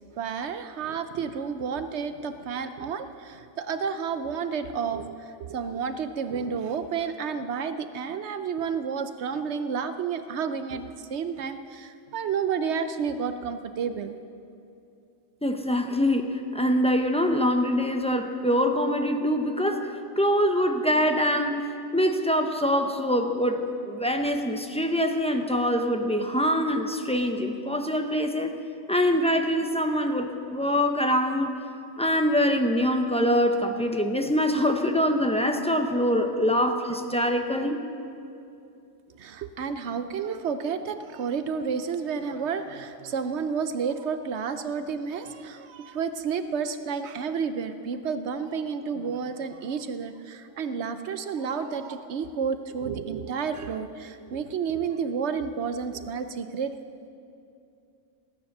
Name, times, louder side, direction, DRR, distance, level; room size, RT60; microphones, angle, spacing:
voice 1, 0.2-14.1 39.2-56.7, right 6 dB, 65° right, 10 dB, 0.9 m, -31 dB
voice 2, 15.4-19.9 20.2-21.7 21.9-28.5 28.9-31.6 32.0-37.8, equal, 5° left, 5 dB, 0.6 m, -24 dB
17.0 x 9.7 x 6.6 m, 2.6 s
omnidirectional pair, 1.3 m